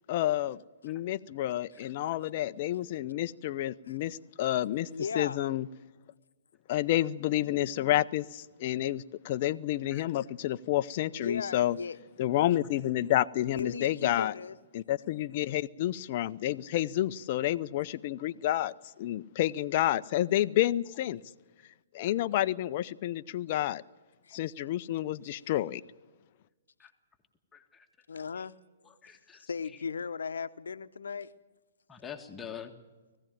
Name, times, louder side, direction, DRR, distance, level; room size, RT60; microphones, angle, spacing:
voice 1, 0.1-4.9 5.1-5.7 6.7-11.8 12.2-14.3 14.7-18.7 19.0-21.2 21.9-23.8 24.3-25.8, left 14 dB, 45° left, 12 dB, 0.6 m, -29 dB
voice 2, 4.6-5.4 11.1-12.0 13.6-14.6 24.2-24.4 28.1-28.5 29.3-31.3, left 5 dB, 75° left, 12 dB, 0.9 m, -37 dB
voice 3, 27.5-27.9 28.1-28.3 29.0-29.4 31.9-32.7, left 8 dB, 15° left, 4 dB, 1.6 m, -45 dB
19.5 x 15.5 x 9.2 m, 1.2 s
hypercardioid pair, 125°, 0 cm